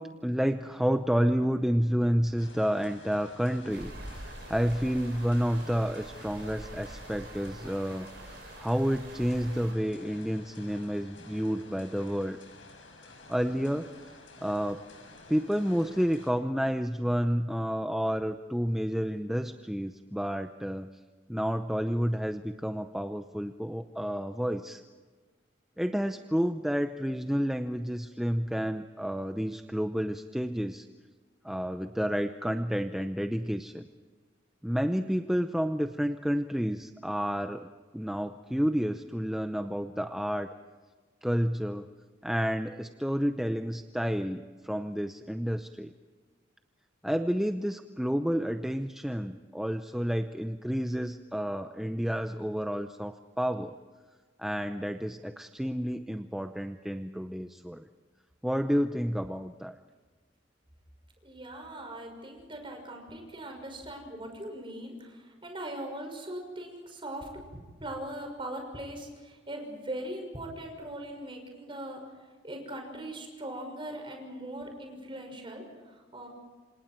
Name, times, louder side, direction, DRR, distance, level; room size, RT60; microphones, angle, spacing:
voice 1, 0.0-8.1 8.6-12.4 13.3-13.9 14.4-14.8 15.3-20.9 21.3-24.8 25.8-30.9 31.4-33.8 34.6-40.5 41.2-41.9 42.2-45.9 47.0-53.8 54.4-57.9 58.4-59.8, equal, ahead, 7 dB, 0.6 m, -30 dB
sound 1, 2.4-16.3, left 3 dB, 85° left, 6.4 m, -52 dB
sound 2, 3.7-9.7, right 1 dB, 60° right, 7.1 m, -45 dB
voice 2, 61.2-67.3 67.8-72.0 72.4-76.3, right 1 dB, 30° right, 3 dB, 6.2 m, -40 dB
28.5 x 27.0 x 4.6 m, 1.4 s
head